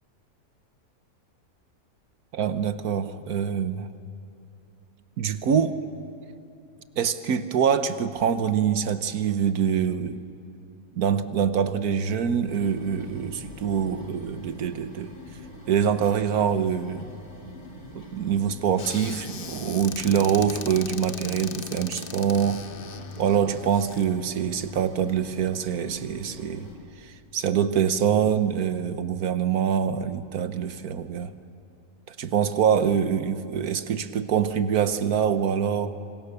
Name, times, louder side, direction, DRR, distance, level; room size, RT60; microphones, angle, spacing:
voice 1, 2.3-3.9 5.2-5.8 7.0-10.2 10.9-15.1 15.7-17.1 17.9-22.6 23.2-26.7 27.0-31.3 32.1-36.0, right 8 dB, 75° right, 11 dB, 1.4 m, -25 dB
sound 1, 12.5-26.8, left 1 dB, 80° left, 4.5 m, -44 dB
Squeak / Cupboard open or close, 18.8-24.1, left 6 dB, 45° left, 0.9 m, -39 dB
26.5 x 26.0 x 6.8 m, 2.9 s
omnidirectional pair, 1.6 m